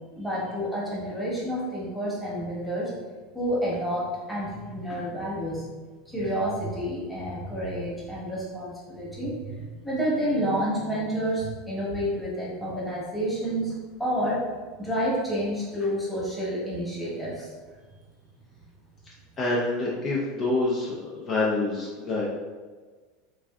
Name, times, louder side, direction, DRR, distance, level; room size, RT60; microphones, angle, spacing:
voice 1, 0.2-2.9 3.3-5.7 6.1-13.7 14.0-14.4 14.8-17.5, equal, 5° left, -8 dB, 1.1 m, -29 dB
voice 2, 19.4-20.9 21.3-22.2, left 2 dB, 35° left, -5 dB, 0.6 m, -26 dB
3.1 x 2.4 x 2.4 m, 1.4 s
supercardioid pair, 115°, 0 cm